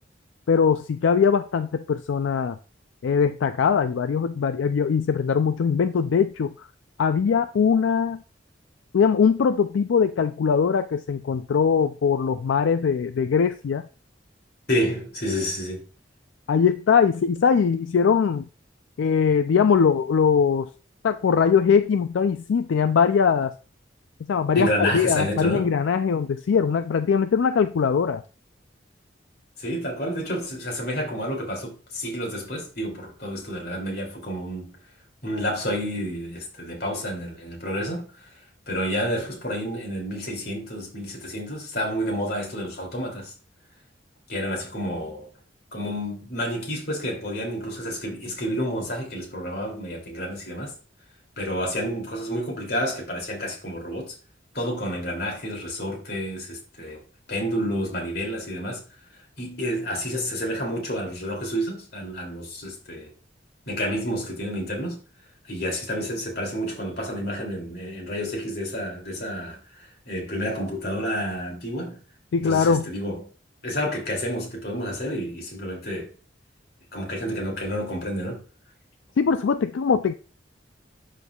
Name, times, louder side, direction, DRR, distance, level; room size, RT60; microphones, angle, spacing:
voice 1, 0.5-2.6 3.0-6.7 7.0-8.2 8.9-13.9 16.5-18.5 19.0-20.7 21.0-23.5 24.3-28.2 72.3-72.9 79.2-80.1, left 6 dB, 85° left, 0.4 m, -21 dB
voice 2, 14.7-15.8 24.5-25.7 29.6-34.7 35.2-38.1 38.7-43.3 44.3-45.3 45.7-50.7 51.4-54.1 54.5-57.0 57.3-58.8 59.4-63.1 63.7-65.0 65.5-72.0 72.4-73.2 73.6-76.1 76.9-78.4, equal, 55° left, 2.7 m, -29 dB
12.0 x 4.5 x 2.3 m
head